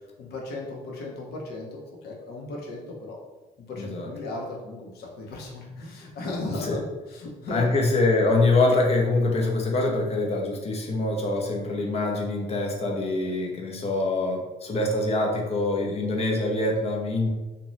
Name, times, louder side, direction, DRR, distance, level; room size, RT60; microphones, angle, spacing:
voice 1, 0.2-3.2 3.7-6.8 7.1-7.8 13.3-13.4, left 2 dB, 70° left, -1 dB, 0.7 m, -36 dB
voice 2, 3.8-4.1 6.6-6.8 7.5-17.3, left 2 dB, 40° left, 0 dB, 0.6 m, -24 dB
2.6 x 2.2 x 3.1 m, 1.1 s
cardioid pair, 110°, 17 cm